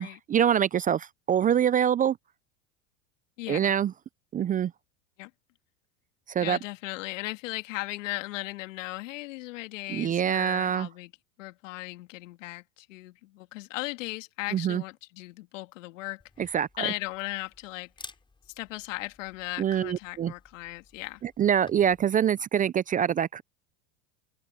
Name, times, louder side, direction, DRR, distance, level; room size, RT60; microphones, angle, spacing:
voice 1, 0.0-2.2 3.5-3.9 4.3-4.7 6.3-6.6 9.9-10.9 14.5-14.8 16.5-16.9 19.6-20.3 21.2-23.4, right 9 dB, 20° right, 0.5 m, -25 dB
voice 2, 3.4-3.7 5.2-5.3 6.4-11.1 11.4-18.1 18.6-21.2, left 19 dB, 75° left, 2.3 m, -37 dB
Camera, 16.2-22.0, left 3 dB, 10° left, 5.6 m, -53 dB
open air
hypercardioid pair, 100°, 38 cm